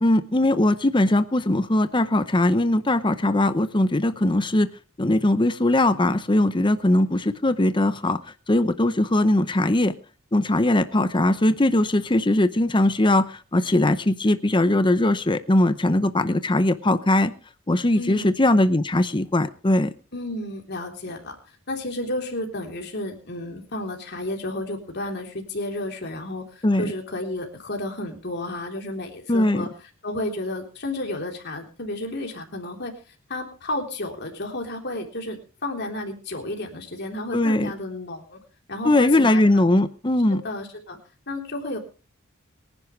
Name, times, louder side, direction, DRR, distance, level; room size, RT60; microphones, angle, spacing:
voice 1, 0.0-4.7 5.0-8.2 8.5-9.9 10.3-17.3 17.7-19.9 26.6-26.9 29.3-29.7 37.3-37.7 38.8-40.4, left 1 dB, 25° left, 12 dB, 0.7 m, -20 dB
voice 2, 18.0-18.4 20.1-21.4 21.7-29.7 30.0-32.9 33.3-38.4 38.7-39.8 40.3-41.0 41.3-41.8, left 1 dB, 50° left, 2 dB, 3.6 m, -32 dB
24.0 x 10.5 x 3.2 m, 0.35 s
head